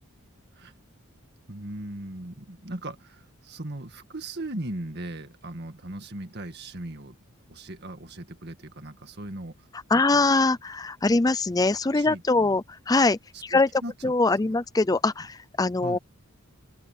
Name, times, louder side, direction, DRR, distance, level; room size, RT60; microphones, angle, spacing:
voice 1, 1.5-7.2 7.5-10.2 11.9-12.6 13.3-14.6 15.8-16.0, right 1 dB, 50° right, 2.0 m, -38 dB
voice 2, 9.9-13.7 14.0-16.0, left 3 dB, 15° left, 0.4 m, -23 dB
head